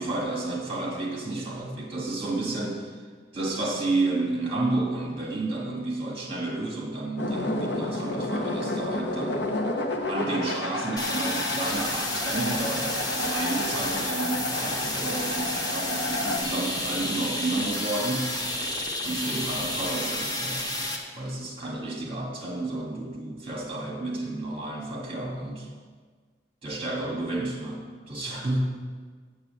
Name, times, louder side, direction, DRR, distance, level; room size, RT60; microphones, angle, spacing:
voice 1, 0.0-2.9 3.3-9.5 10.1-18.3 19.0-20.8 21.1-25.7 26.6-28.6, right 2 dB, 30° right, -1 dB, 1.9 m, -31 dB
sound 1, 7.2-16.4, left 2 dB, 65° left, 1.0 m, -31 dB
sound 2, 11.0-21.0, left 1 dB, 20° left, 1.1 m, -31 dB
7.9 x 7.4 x 7.7 m, 1.5 s
head